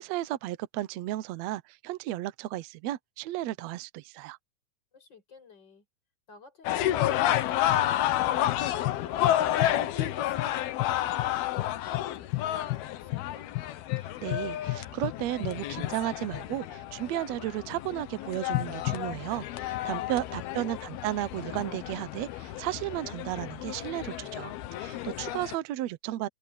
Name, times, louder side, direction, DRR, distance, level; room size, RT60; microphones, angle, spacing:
voice 1, 0.0-4.4 14.0-26.3, right 14 dB, 90° right, 1.5 m, -34 dB
voice 2, 4.9-5.8 6.3-10.6 11.0-13.5 20.2-20.9, left 5 dB, 30° left, 5.9 m, -53 dB
sound 1, 6.7-25.6, left 13 dB, 90° left, 3.1 m, -30 dB
omnidirectional pair, 4.2 m